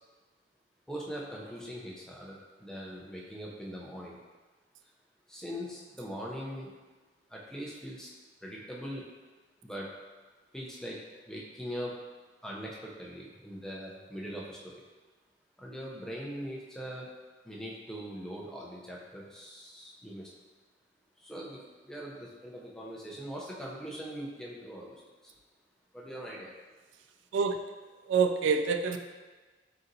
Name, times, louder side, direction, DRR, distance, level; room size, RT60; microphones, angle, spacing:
voice 1, 0.9-4.2 5.3-6.7 7.3-8.1 8.4-9.1 9.6-9.9 10.5-11.9 12.4-14.8 15.6-17.1 17.4-20.3 21.2-25.3 25.9-26.5, equal, 5° left, -4 dB, 0.6 m, -41 dB
voice 2, 28.1-29.0, right 5 dB, 85° right, 7 dB, 0.3 m, -26 dB
3.9 x 3.9 x 2.7 m, 1.3 s
head